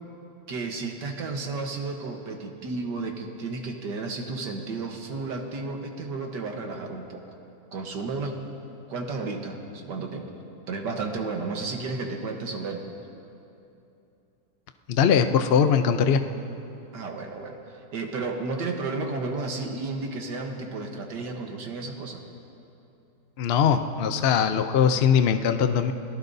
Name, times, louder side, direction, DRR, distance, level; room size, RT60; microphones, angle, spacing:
voice 1, 0.5-7.2 7.7-8.4 8.9-10.3 10.7-12.8 16.9-22.2, right 3 dB, 75° right, 2 dB, 1.8 m, -32 dB
voice 2, 14.9-16.2 23.4-25.9, left 7 dB, 75° left, 8 dB, 0.5 m, -21 dB
27.5 x 18.5 x 2.7 m, 2.8 s
omnidirectional pair, 1.9 m